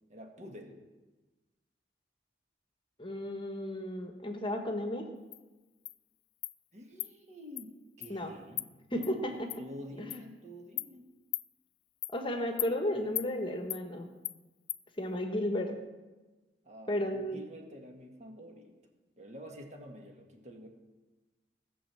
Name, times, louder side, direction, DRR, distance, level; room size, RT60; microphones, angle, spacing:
voice 1, 0.1-0.8 6.7-11.0 16.6-18.8 19.2-20.7, equal, 40° right, 2 dB, 1.8 m, -49 dB
voice 2, 3.0-5.0 8.1-8.3 8.9-9.5 10.0-10.1 12.1-14.1 15.0-15.7 16.9-17.4, left 1 dB, 30° left, 5 dB, 1.2 m, -33 dB
Insect, 5.3-5.4 5.9-6.0 6.4-6.5 7.0-7.1 7.6-7.7 8.0-8.1 8.6-8.7 9.0-9.1 9.5-9.6 10.1-10.2 10.8-10.9 11.3-11.5 12.0-12.2 12.6-12.7 13.2-13.3 13.7-13.8 14.2-14.4 14.7-14.8, left 18 dB, 80° left, 0.4 m, -36 dB
15.0 x 6.4 x 7.6 m, 1.2 s
head